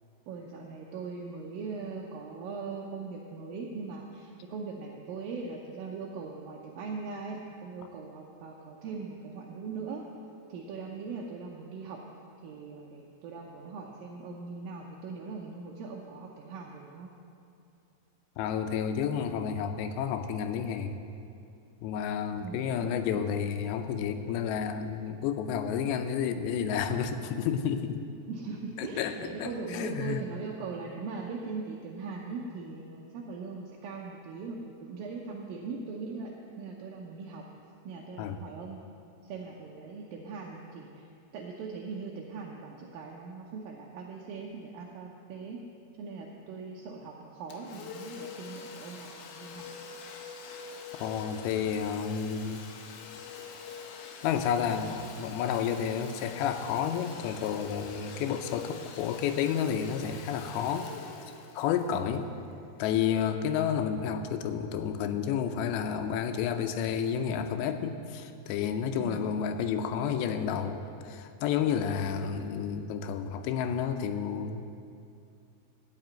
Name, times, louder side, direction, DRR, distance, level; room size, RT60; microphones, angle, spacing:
voice 1, 0.3-10.0 10.5-12.0 12.4-17.1 22.4-22.9 28.3-37.5 37.8-38.8 39.2-41.1 41.3-45.6 46.0-49.7 61.9-62.2 69.0-69.4, right 4 dB, 75° right, -1 dB, 2.1 m, -40 dB
voice 2, 18.4-21.0 21.8-28.0 28.8-29.1 29.4-30.2 38.2-38.4 51.0-52.7 54.2-60.9 61.5-62.3 62.8-74.9, left 8 dB, 90° left, 7 dB, 2.9 m, -31 dB
Domestic sounds home sounds, 47.5-63.0, left 5 dB, 75° left, 2.6 m, -45 dB
12.5 x 5.9 x 9.1 m, 2.6 s
omnidirectional pair, 4.9 m